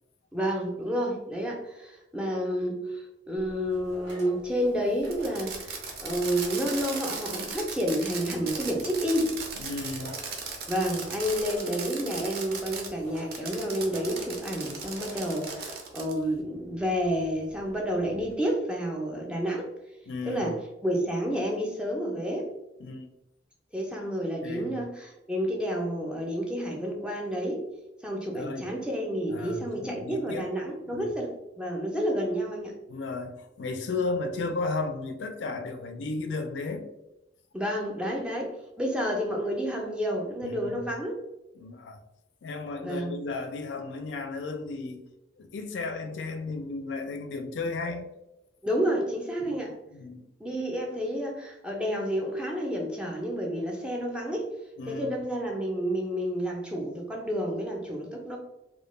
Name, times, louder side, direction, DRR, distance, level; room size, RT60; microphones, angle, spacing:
voice 1, 0.3-9.4 10.7-19.7 20.3-22.5 23.7-27.7 28.0-32.7 37.5-41.2 42.8-43.2 48.6-49.7 50.4-54.5 54.9-58.4, equal, 5° right, 0 dB, 0.4 m, -30 dB
sound 1, 3.4-18.3, right 1 dB, 90° right, 1.1 m, -48 dB
Fireworks, 5.0-12.9 13.3-16.2, right 5 dB, 60° right, 0.5 m, -37 dB
voice 2, 9.6-10.2 20.1-20.5 22.8-23.1 24.4-24.8 28.3-28.7 29.3-30.5 30.9-31.1 32.9-36.9 40.4-40.8 41.6-42.0 42.4-45.0 45.4-48.1 49.4-49.5 49.9-50.2 54.8-55.3, left 3 dB, 85° left, 7 dB, 0.4 m, -34 dB
2.2 x 2.1 x 3.0 m, 0.92 s
head